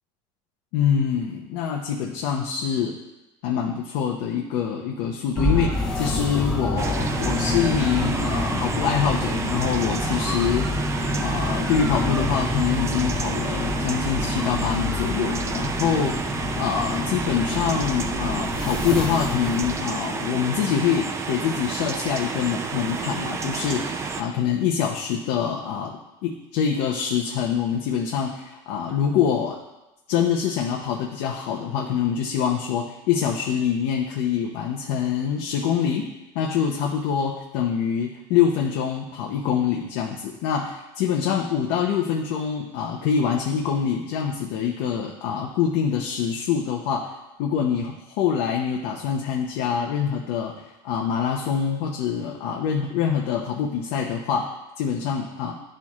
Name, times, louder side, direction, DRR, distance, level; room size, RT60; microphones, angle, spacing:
voice 1, 0.7-3.0 3.4-10.8 11.2-29.6 30.1-36.1 36.3-47.1 47.4-55.5, left 7 dB, 75° left, 0 dB, 0.8 m, -25 dB
sound 1, 5.4-19.8, left 2 dB, 5° left, 0.9 m, -27 dB
sound 2, 6.8-24.2, right 5 dB, 25° right, 0.5 m, -31 dB
11.5 x 4.5 x 2.4 m, 1.0 s
cardioid pair, 140°, 12 cm